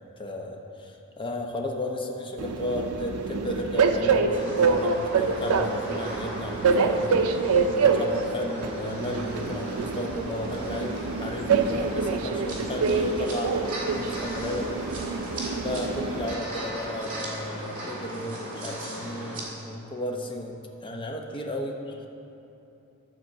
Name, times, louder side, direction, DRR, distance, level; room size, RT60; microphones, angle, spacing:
voice 1, 0.2-7.1 7.7-13.5 13.9-15.1 15.6-22.1, left 1 dB, 25° left, 1 dB, 0.8 m, -34 dB
Train, 2.4-16.3, right 4 dB, 80° right, 0.5 m, -26 dB
sound 1, 4.3-19.4, right 1 dB, 40° right, 2.1 m, -37 dB
11.5 x 4.5 x 6.6 m, 2.8 s
head